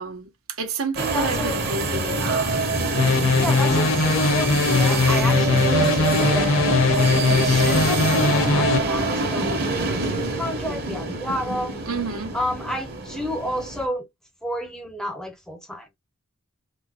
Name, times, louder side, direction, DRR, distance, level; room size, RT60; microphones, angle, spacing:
voice 1, 0.0-2.6 11.9-12.3, right 4 dB, 80° right, 0.9 m, -30 dB
sound 1, 1.0-13.8, right 2 dB, 45° right, 1.0 m, -25 dB
voice 2, 1.1-1.6 3.3-11.8 12.3-14.1 14.4-16.0, equal, 5° left, 0.5 m, -31 dB
synth base, 3.0-8.8, left 3 dB, 65° left, 0.5 m, -20 dB
3.4 x 2.1 x 3.3 m
head